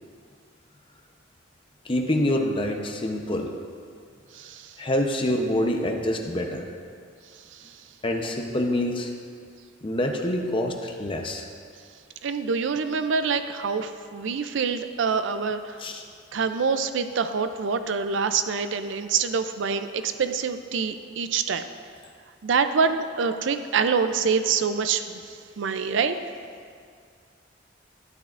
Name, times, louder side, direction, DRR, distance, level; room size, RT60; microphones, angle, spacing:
voice 1, 1.8-3.6 4.8-6.7 8.0-9.1 9.8-11.5 15.8-16.0, left 1 dB, 25° left, 3 dB, 0.7 m, -26 dB
voice 2, 12.2-15.6 16.3-21.7 22.4-25.2 25.6-26.1, right 5 dB, 65° right, 9 dB, 0.4 m, -25 dB
12.0 x 10.0 x 2.5 m, 2.2 s
head